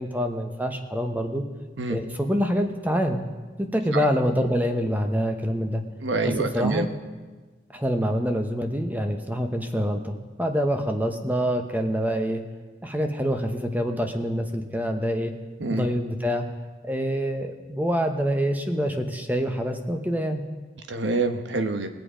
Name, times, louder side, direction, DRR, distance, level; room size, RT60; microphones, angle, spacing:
voice 1, 0.0-1.4 1.9-3.2 3.6-5.8 6.2-6.9 7.7-12.4 12.8-15.3 15.7-16.4 16.8-20.4, equal, 10° right, 5 dB, 0.9 m, -26 dB
voice 2, 6.0-6.9 15.6-15.9 20.9-21.9, right 3 dB, 80° right, 8 dB, 1.1 m, -26 dB
21.0 x 7.7 x 5.0 m, 1.3 s
head